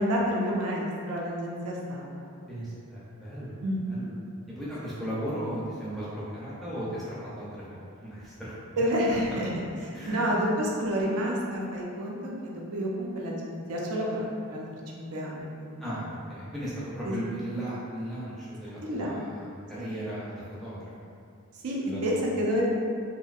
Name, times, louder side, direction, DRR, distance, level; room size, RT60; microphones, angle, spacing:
voice 1, 0.0-2.1 3.6-3.9 8.8-9.5 9.8-12.2 12.4-14.7 14.9-15.9 17.0-17.1 18.8-19.1 19.7-19.9 21.5-21.8 22.0-22.7, equal, 80° right, -3 dB, 0.4 m, -29 dB
voice 2, 2.5-3.5 3.9-4.1 4.6-8.5 9.9-10.2 15.8-20.9 21.8-22.2, right 1 dB, ahead, -10 dB, 0.4 m, -36 dB
2.6 x 2.1 x 2.3 m, 2.4 s
head